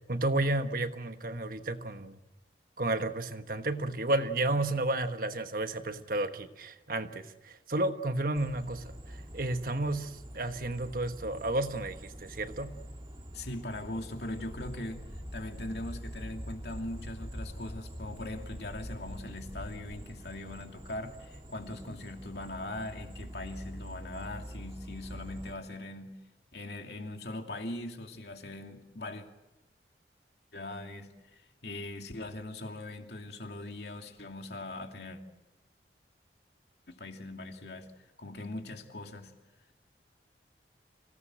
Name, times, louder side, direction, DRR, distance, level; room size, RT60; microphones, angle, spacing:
voice 1, 0.1-2.2 2.8-12.7, right 2 dB, 50° right, 8 dB, 1.3 m, -32 dB
sound 1, 8.3-25.5, equal, 30° right, 1.6 m, -47 dB
voice 2, 13.3-26.2 26.5-29.2 30.5-35.2 36.9-37.9 38.2-39.3, left 1 dB, 70° left, 4 dB, 2.5 m, -41 dB
sound 2, 14.5-20.0, equal, 15° left, 1.0 m, -44 dB
26.5 x 17.5 x 7.7 m, 1.0 s
head